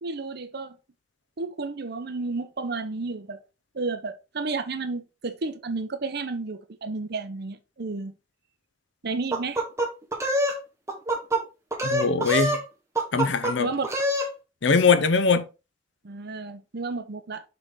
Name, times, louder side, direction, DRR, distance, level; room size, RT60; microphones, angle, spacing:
voice 1, 0.0-0.8 1.4-3.4 3.7-8.1 9.0-9.6 13.6-13.9 16.0-17.4, right 3 dB, 60° right, 0.8 m, -32 dB
sound 1, 9.3-10.6 10.9-11.4 11.7-12.6 13.0-13.5 13.8-14.3, right 1 dB, 15° right, 1.3 m, -25 dB
voice 2, 11.8-12.6 13.1-13.7 14.6-15.4, left 5 dB, 70° left, 0.7 m, -21 dB
6.7 x 4.0 x 3.7 m
head